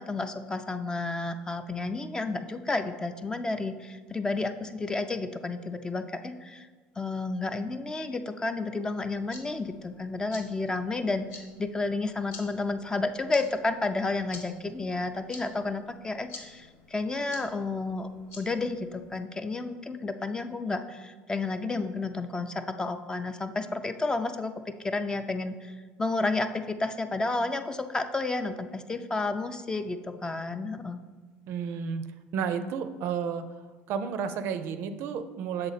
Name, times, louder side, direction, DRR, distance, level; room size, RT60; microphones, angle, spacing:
voice 1, 0.0-6.7 7.0-18.1 18.3-31.0, left 3 dB, 15° left, 9 dB, 0.4 m, -31 dB
sound 1, 9.0-19.2, left 4 dB, 70° left, 1.3 m, -50 dB
voice 2, 31.5-32.0 32.3-33.4 33.9-35.7, right 7 dB, 60° right, 10 dB, 0.4 m, -31 dB
6.6 x 3.9 x 4.1 m, 1.4 s
supercardioid pair, 95°, 4 cm